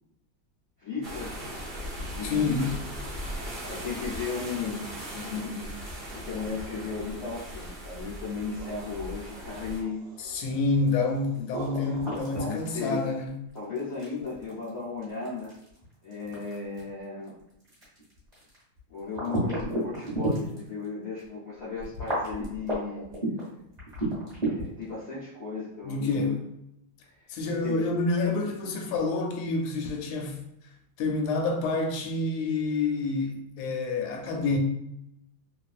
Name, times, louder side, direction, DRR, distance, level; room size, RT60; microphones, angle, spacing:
voice 1, 0.8-2.7 3.6-10.0 12.2-13.1 13.5-15.5 16.0-17.4 18.9-23.0 24.4-26.4 27.5-27.8, left 4 dB, 65° left, -8 dB, 0.8 m, -36 dB
sound 1, 1.0-9.8, equal, 55° right, 0.6 m, -38 dB
voice 2, 2.2-2.7 10.2-13.3 25.8-26.4 27.3-30.4 31.0-34.6, left 3 dB, 85° left, 3 dB, 1.5 m, -28 dB
sound 2, 8.3-13.2, right 5 dB, 75° right, 1.0 m, -46 dB
sound 3, 10.2-20.8 21.2-21.3 21.8-24.8, right 1 dB, 25° right, 1.0 m, -33 dB
3.2 x 2.4 x 2.4 m, 0.80 s
omnidirectional pair, 2.3 m